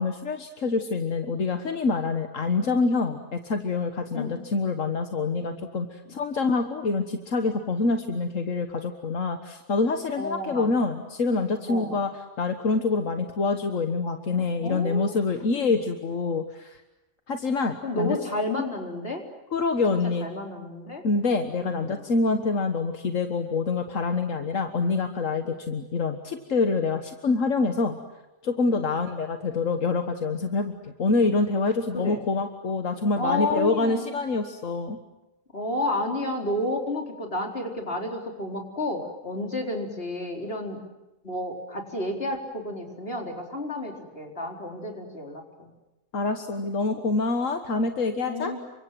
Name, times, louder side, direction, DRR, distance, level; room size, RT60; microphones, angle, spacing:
voice 1, 0.0-12.1 12.4-16.8 17.3-18.2 19.5-20.3 21.0-28.0 28.4-35.0 46.1-48.5, left 3 dB, 80° left, 6 dB, 1.8 m, -26 dB
voice 2, 10.2-10.7 11.7-12.0 14.4-15.2 15.5-15.8 17.8-19.2 20.2-21.0 21.5-22.0 25.4-25.5 28.7-28.8 31.9-32.2 33.2-34.2 35.5-40.8 41.2-45.7 48.2-48.6, left 1 dB, 50° left, 2 dB, 4.6 m, -31 dB
29.5 x 25.0 x 7.6 m, 1.0 s
omnidirectional pair, 1.3 m